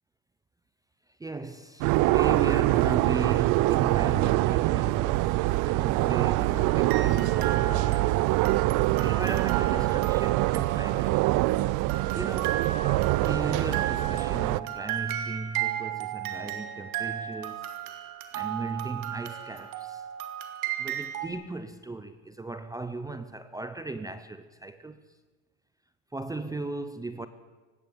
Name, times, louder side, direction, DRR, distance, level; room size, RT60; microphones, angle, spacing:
voice 1, 1.2-5.3 5.7-8.3 9.0-11.4 12.1-12.7 13.2-17.7 18.3-20.0 20.8-25.0 26.1-27.3, right 3 dB, 10° right, 0.7 m, -37 dB
sound 1, 1.8-14.6, right 18 dB, 45° right, 0.6 m, -24 dB
sound 2, 6.9-11.5 11.9-21.3, right 11 dB, 80° right, 2.5 m, -34 dB
18.0 x 16.5 x 8.9 m
supercardioid pair, 135°, 44 cm